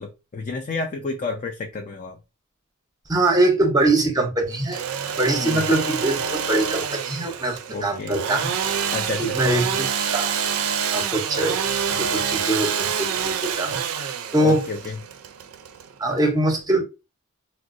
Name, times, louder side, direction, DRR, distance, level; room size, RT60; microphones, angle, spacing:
voice 1, 0.0-2.2 5.3-5.7 7.7-8.2 8.9-9.5 14.4-15.0, left 4 dB, 35° left, 0.4 m, -30 dB
voice 2, 3.1-4.8 5.2-8.5 9.2-10.3 10.9-11.6 11.9-14.7 16.0-16.8, right 2 dB, 20° right, 0.7 m, -23 dB
Engine / Sawing, 4.5-16.2, right 7 dB, 85° right, 0.4 m, -27 dB
3.7 x 2.0 x 2.5 m
head